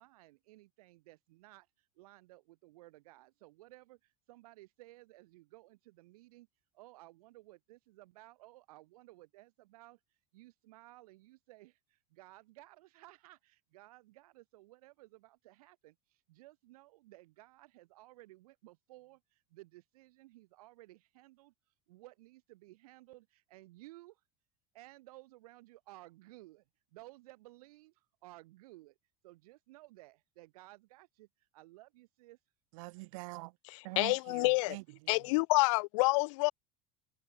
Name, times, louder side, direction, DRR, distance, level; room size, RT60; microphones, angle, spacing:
voice 1, 0.0-6.5 6.7-24.2 24.7-26.6 26.9-29.0 29.2-32.4 33.9-34.1, right 19 dB, 80° right, 6.9 m, -57 dB
voice 2, 32.7-33.6 33.8-35.3, right 25 dB, 60° right, 5.1 m, -45 dB
voice 3, 34.0-34.8 35.1-36.5, left 27 dB, 60° left, 0.5 m, -28 dB
cardioid pair, 175°, 19 cm